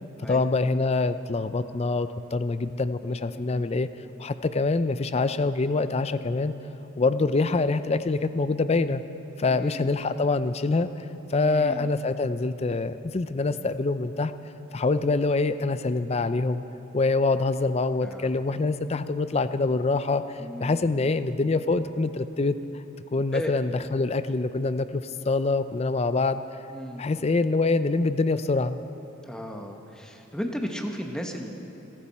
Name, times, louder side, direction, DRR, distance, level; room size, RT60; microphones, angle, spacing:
voice 1, 0.3-3.9 4.2-6.5 7.0-9.0 9.4-14.3 14.7-16.6 16.9-22.8 23.1-26.4 27.0-28.8, left 3 dB, 30° left, 12 dB, 0.4 m, -25 dB
voice 2, 9.5-9.9 11.4-11.9 18.0-18.3 20.4-21.1 23.3-23.5 26.7-27.1 29.2-31.5, equal, 5° left, 3 dB, 0.9 m, -35 dB
29.0 x 10.0 x 4.2 m, 2.9 s
head